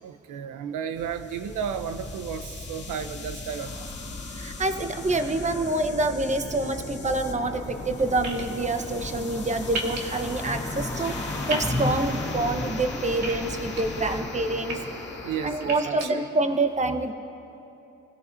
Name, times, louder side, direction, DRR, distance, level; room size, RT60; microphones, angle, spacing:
voice 1, 0.0-4.2 15.2-16.2, right 7 dB, 85° right, 8 dB, 0.8 m, -33 dB
sound 1, 1.0-16.3, left 3 dB, 40° left, 2.2 m, -37 dB
voice 2, 4.3-14.8 15.2-17.1, right 2 dB, 25° right, 7 dB, 1.1 m, -27 dB
Car passing by, 7.2-15.8, left 2 dB, 10° left, 2.5 m, -35 dB
sound 2, 8.2-8.4 9.7-10.0 11.5-11.7 13.2-13.8 14.4-14.7 15.6-16.1, right 2 dB, 65° right, 2.1 m, -32 dB
27.0 x 16.5 x 2.8 m, 2.8 s
cardioid pair, 90°, 30 cm